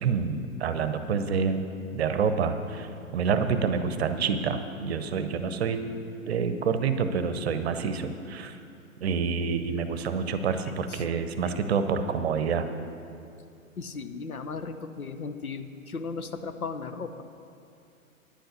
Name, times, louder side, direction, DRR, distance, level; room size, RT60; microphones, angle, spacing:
voice 1, 0.0-5.8 6.3-8.6 9.0-12.7, right 6 dB, 45° right, 9 dB, 0.8 m, -28 dB
voice 2, 13.8-17.2, left 4 dB, 80° left, 9 dB, 0.8 m, -36 dB
10.5 x 7.8 x 7.2 m, 2.5 s
figure-of-eight pair, 110°, 42 cm